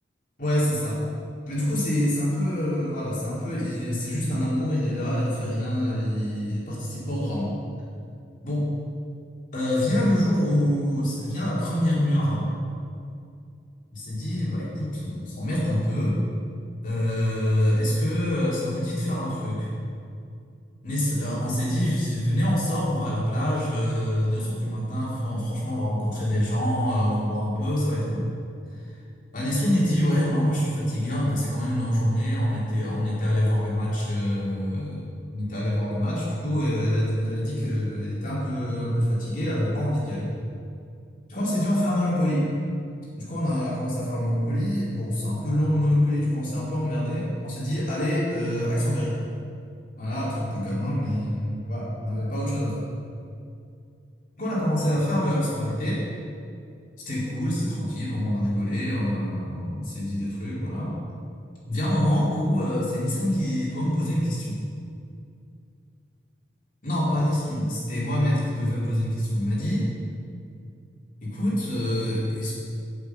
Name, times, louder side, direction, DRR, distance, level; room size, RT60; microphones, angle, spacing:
voice 1, 0.4-1.0 1.5-7.5 8.4-8.7 9.5-12.5 13.9-16.2 16.8-19.7 20.8-28.3 29.3-40.3 41.3-42.5 43.2-49.2 50.0-52.8 54.4-56.0 57.1-60.9 61.7-64.6 66.8-69.9 71.2-72.5, equal, 45° left, -7 dB, 2.6 m, -25 dB
8.4 x 6.1 x 7.9 m, 2.4 s
head